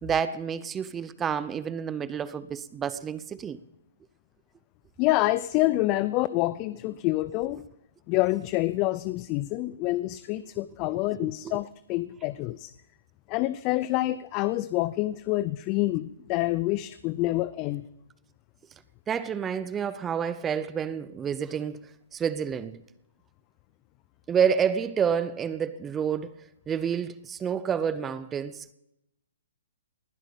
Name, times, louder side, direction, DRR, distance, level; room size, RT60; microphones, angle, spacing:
voice 1, 0.0-3.6 19.1-21.8 22.1-22.8 24.3-26.4 26.7-28.7, right 7 dB, 15° right, 0.6 m, -29 dB
voice 2, 5.0-7.6 8.1-12.7 13.3-17.9, left 18 dB, 35° left, 0.5 m, -27 dB
19.5 x 11.0 x 5.2 m
hypercardioid pair, 135°, 0 cm